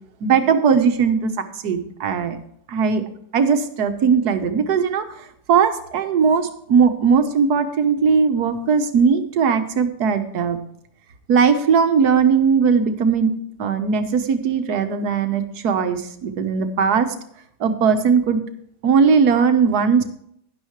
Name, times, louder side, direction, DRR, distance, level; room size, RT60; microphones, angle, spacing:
voice 1, 0.2-1.3 1.6-2.4 2.7-3.0 3.3-5.1 5.5-10.6 11.3-13.3 13.6-17.1 17.6-18.4 18.8-20.1, right 6 dB, 65° right, 8 dB, 1.5 m, -18 dB
12.0 x 10.0 x 3.1 m, 0.69 s
omnidirectional pair, 1.9 m